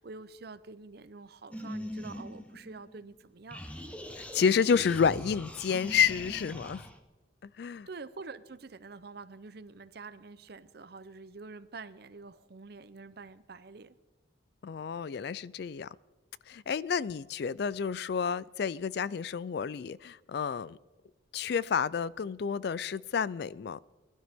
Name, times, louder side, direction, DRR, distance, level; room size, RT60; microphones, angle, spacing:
voice 1, 0.0-3.6 7.9-13.9, right 4 dB, 55° right, 15 dB, 0.6 m, -47 dB
sound 1, 1.5-3.1 3.5-7.0, equal, 5° left, 0.8 m, -42 dB
voice 2, 4.2-6.8 7.4-7.9 14.6-15.9 16.5-20.8 21.3-23.8, left 6 dB, 55° left, 20 dB, 0.3 m, -30 dB
20.5 x 12.0 x 3.6 m, 1.2 s
head